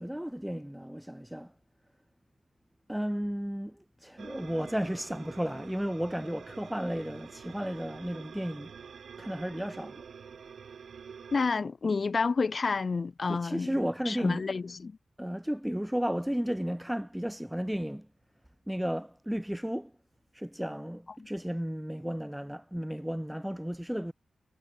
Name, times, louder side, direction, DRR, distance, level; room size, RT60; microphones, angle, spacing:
voice 1, 0.0-1.5 2.9-8.7 9.2-10.0 13.3-14.5 15.2-18.1 18.7-19.9 20.3-24.1, equal, 5° right, 1.2 m, -33 dB
sound 1, 4.2-11.5, right 6 dB, 70° right, 6.6 m, -48 dB
voice 2, 11.3-13.8 14.1-15.0, left 4 dB, 50° left, 2.6 m, -29 dB
cardioid pair, 55°, 0 cm